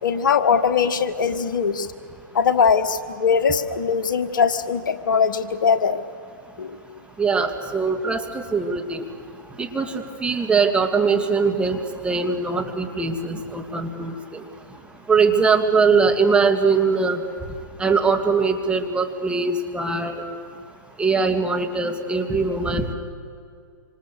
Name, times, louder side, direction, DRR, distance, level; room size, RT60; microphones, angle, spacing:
voice 1, 0.0-1.9 2.3-6.0 6.6-6.8, left 6 dB, 70° left, 10 dB, 1.5 m, -21 dB
voice 2, 7.2-9.0 9.6-11.8 12.0-14.1 15.1-17.2 17.8-20.2 21.0-22.9, right 4 dB, 10° right, 4 dB, 2.0 m, -21 dB
26.5 x 26.5 x 6.7 m, 2.4 s
hypercardioid pair, 120°, 11 cm